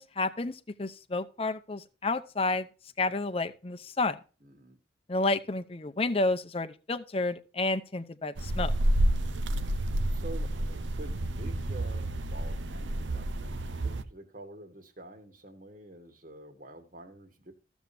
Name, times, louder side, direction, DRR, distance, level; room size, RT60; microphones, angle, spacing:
voice 1, 0.0-2.7 3.0-4.2 5.1-8.7, left 2 dB, 30° left, 0.7 m, -30 dB
voice 2, 4.4-4.8 9.5-9.8 10.1-17.5, right 1 dB, 45° right, 1.7 m, -48 dB
sound 1, 8.4-14.0, right 1 dB, 80° right, 0.7 m, -29 dB
14.5 x 7.2 x 2.7 m
head